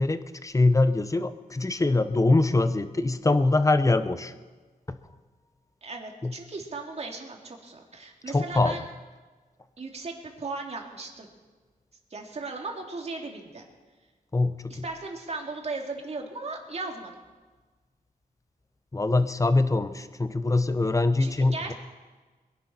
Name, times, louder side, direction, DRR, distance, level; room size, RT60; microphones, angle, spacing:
voice 1, 0.0-4.3 4.9-5.0 6.2-6.3 8.3-8.8 14.3-14.7 18.9-21.7, left 2 dB, 20° left, 12 dB, 0.8 m, -23 dB
voice 2, 5.8-8.8 9.8-11.3 12.1-13.6 14.7-17.1 21.2-21.7, right 3 dB, 45° right, 2 dB, 2.3 m, -37 dB
22.5 x 11.0 x 4.3 m, 1.3 s
wide cardioid pair, 95°, 15 cm